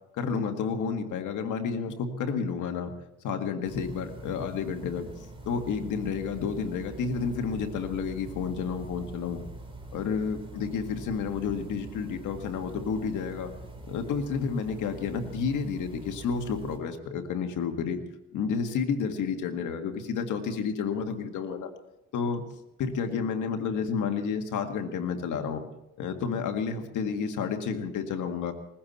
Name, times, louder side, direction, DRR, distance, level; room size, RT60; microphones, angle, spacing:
voice 1, 0.1-2.9 3.2-5.1 5.5-9.4 9.9-13.5 13.9-18.0 18.3-21.7 22.1-22.4 22.8-25.7 26.0-28.5, left 6 dB, 80° left, 5 dB, 1.9 m, -30 dB
sound 1, 3.6-16.8, right 2 dB, 20° right, 4.2 m, -44 dB
20.0 x 15.0 x 4.3 m, 0.90 s
cardioid pair, 90°, 30 cm